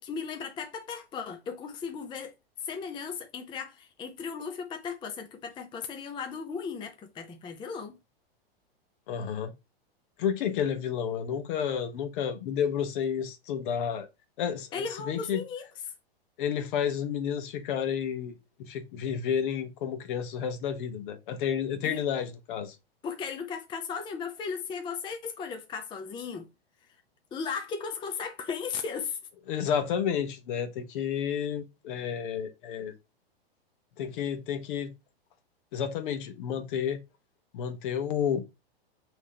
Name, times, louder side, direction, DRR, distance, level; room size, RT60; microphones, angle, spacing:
voice 1, 0.0-2.3 2.6-8.0 14.7-15.7 21.8-22.0 23.0-26.5 27.3-29.2, left 6 dB, 15° left, 0.5 m, -36 dB
voice 2, 9.1-9.5 10.2-14.1 14.4-15.4 16.4-18.3 18.7-22.8 29.5-32.9 34.0-34.9 35.7-37.0 37.5-38.4, left 8 dB, 55° left, 1.1 m, -31 dB
3.6 x 3.1 x 4.4 m
hypercardioid pair, 110°, 31 cm